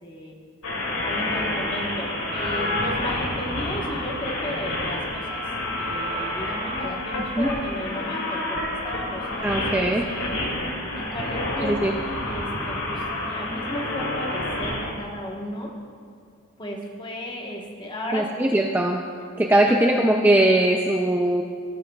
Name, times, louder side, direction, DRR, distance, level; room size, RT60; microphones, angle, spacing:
voice 1, 0.0-0.3 1.0-5.5 5.7-10.4 10.9-11.8 12.2-15.7 16.6-18.3 19.5-19.9, equal, 20° left, 0 dB, 1.2 m, -34 dB
sound 1, 0.6-14.9, left 1 dB, 85° left, 2.4 m, -29 dB
voice 2, 9.4-10.0 11.6-11.9 18.1-19.0 19.4-21.4, right 1 dB, 10° right, 1 dB, 0.3 m, -20 dB
17.5 x 9.4 x 2.3 m, 2.3 s
head